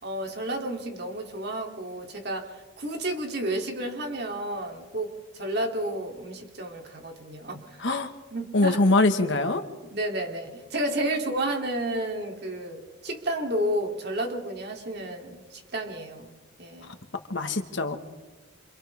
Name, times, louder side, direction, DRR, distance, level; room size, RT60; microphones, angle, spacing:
voice 1, 0.0-8.0 8.3-8.8 9.8-17.0, right 1 dB, 55° right, 2 dB, 3.2 m, -31 dB
voice 2, 7.8-8.1 8.5-9.6 17.3-18.0, left 2 dB, 60° left, 7 dB, 1.8 m, -23 dB
29.0 x 27.5 x 3.6 m, 1.3 s
head